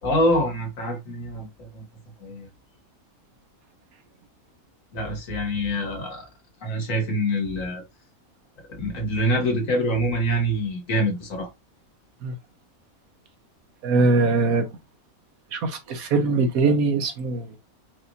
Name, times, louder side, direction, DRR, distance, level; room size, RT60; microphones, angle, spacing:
voice 1, 0.0-1.8 2.2-2.5 4.9-6.3 6.6-7.8 8.7-11.5, equal, 70° left, 1.9 m, -25 dB
voice 2, 13.8-14.7 15.5-17.6, right 3 dB, 85° right, 1.4 m, -22 dB
4.7 x 3.1 x 2.6 m
omnidirectional pair, 1.5 m